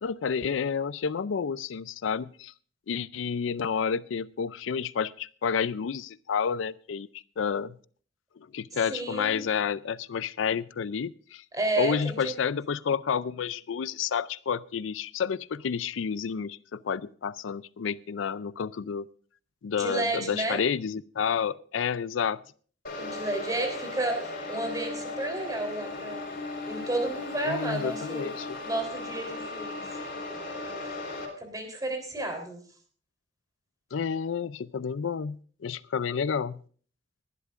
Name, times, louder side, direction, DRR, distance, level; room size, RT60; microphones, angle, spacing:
voice 1, 0.0-2.5 2.9-7.8 8.5-11.4 11.8-19.1 19.6-22.4 27.4-28.6 33.9-35.4 35.6-36.6, left 6 dB, 80° left, 17 dB, 0.4 m, -30 dB
voice 2, 8.9-9.5 11.5-12.4 19.8-20.6 23.0-26.3 26.7-28.3 28.6-29.9 31.4-32.6, right 2 dB, 20° right, 5 dB, 3.6 m, -31 dB
sound 1, 22.8-31.2, left 2 dB, 55° left, 4.4 m, -37 dB
20.5 x 11.5 x 2.5 m, 0.43 s
head